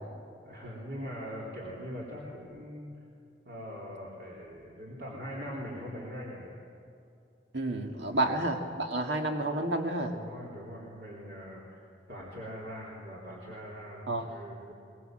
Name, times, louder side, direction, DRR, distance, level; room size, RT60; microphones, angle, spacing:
voice 1, 0.4-2.9 3.4-6.6 8.1-8.3 10.1-11.8 12.1-14.7, equal, 60° right, -4 dB, 3.7 m, -42 dB
voice 2, 7.5-10.2 14.1-14.2, right 2 dB, 75° right, 3 dB, 2.0 m, -30 dB
23.0 x 21.0 x 7.7 m, 2.6 s
head